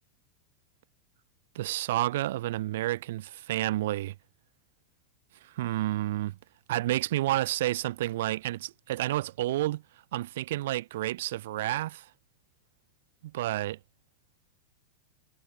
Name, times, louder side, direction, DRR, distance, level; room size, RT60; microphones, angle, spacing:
voice 1, 1.5-4.1 5.5-6.4 6.7-9.8 10.1-12.0 13.2-13.8, right 15 dB, 55° right, 6.6 m, -30 dB
figure-of-eight pair, 90°, 0 cm